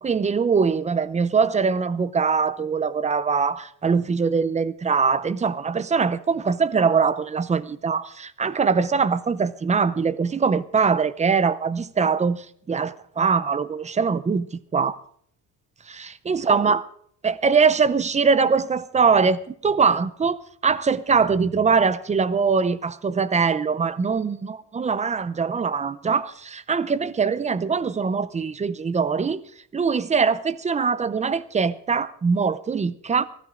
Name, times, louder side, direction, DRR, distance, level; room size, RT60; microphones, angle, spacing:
voice 1, 0.0-15.0 15.9-16.9 17.2-29.4 29.7-33.3, right 5 dB, 15° right, 0.5 m, -22 dB
19.5 x 15.5 x 3.7 m
cardioid pair, 165°, 41 cm